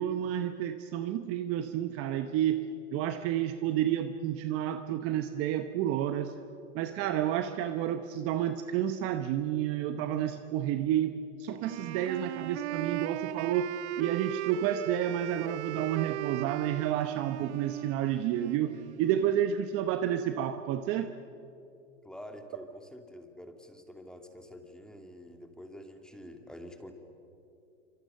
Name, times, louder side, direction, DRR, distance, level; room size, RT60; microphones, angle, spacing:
voice 1, 0.0-2.7 2.9-6.3 6.7-21.1, right 10 dB, 40° right, 9 dB, 1.0 m, -30 dB
Wind instrument woodwind instrument, 11.6-19.4, right 15 dB, 65° right, 0.7 m, -38 dB
voice 2, 22.0-26.9, equal, ahead, 4 dB, 2.5 m, -47 dB
27.0 x 25.5 x 6.7 m, 2.6 s
hypercardioid pair, 120°, 38 cm